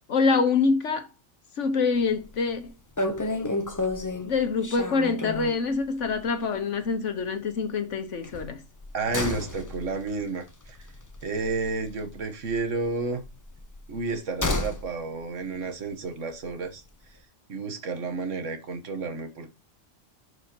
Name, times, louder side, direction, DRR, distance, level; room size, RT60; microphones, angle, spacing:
voice 1, 0.1-1.1 1.6-2.7 4.2-8.6, left 4 dB, 70° left, 1.4 m, -25 dB
sound 1, 2.1-2.3 2.6-2.7 3.0-5.7 6.0-6.2 6.5-6.6 8.2-12.2 12.4-14.9 15.2-15.3, left 2 dB, 20° left, 0.6 m, -31 dB
voice 2, 8.9-10.8 11.2-13.2 13.9-16.8 17.5-19.5, right 3 dB, 75° right, 1.6 m, -31 dB
11.0 x 4.9 x 2.9 m
omnidirectional pair, 1.3 m